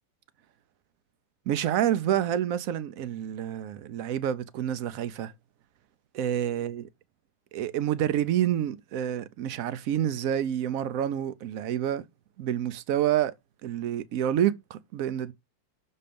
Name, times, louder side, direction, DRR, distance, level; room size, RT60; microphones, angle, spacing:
voice 1, 1.5-5.3 6.1-6.8 7.5-12.0 12.4-13.3 13.6-15.3, right 10 dB, 70° right, 0.8 m, -28 dB
6.4 x 4.3 x 5.1 m
omnidirectional pair, 1.9 m